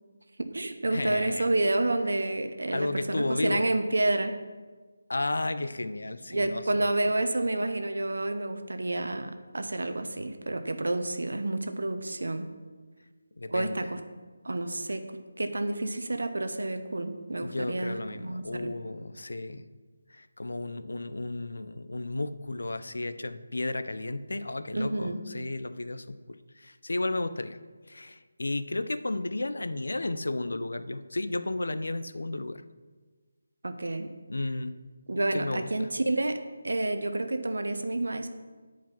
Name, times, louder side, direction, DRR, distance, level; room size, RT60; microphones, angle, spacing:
voice 1, 0.4-4.3 6.3-12.5 13.5-14.0 14.4-18.7 24.7-25.2 33.6-34.1 35.1-36.4 36.6-38.3, right 2 dB, 85° right, 8 dB, 0.8 m, -29 dB
voice 2, 0.9-1.5 2.7-3.7 5.1-7.1 13.4-13.8 17.4-19.6 20.1-27.6 27.9-32.6 34.3-34.7 35.3-35.9, left 2 dB, 85° left, 12 dB, 0.5 m, -33 dB
9.1 x 5.0 x 5.5 m, 1.4 s
figure-of-eight pair, 175°, 0 cm